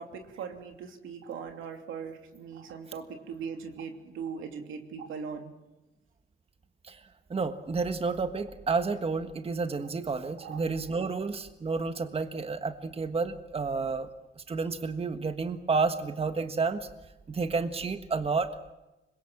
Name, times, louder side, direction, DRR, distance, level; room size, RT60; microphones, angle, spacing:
voice 1, 0.0-5.5 10.4-11.3, right 6 dB, 85° right, 4 dB, 2.9 m, -40 dB
voice 2, 7.3-14.1 14.5-16.8 17.3-18.5, right 4 dB, 30° right, 8 dB, 1.4 m, -30 dB
25.5 x 21.5 x 7.3 m, 1.0 s
cardioid pair, 90°, 20 cm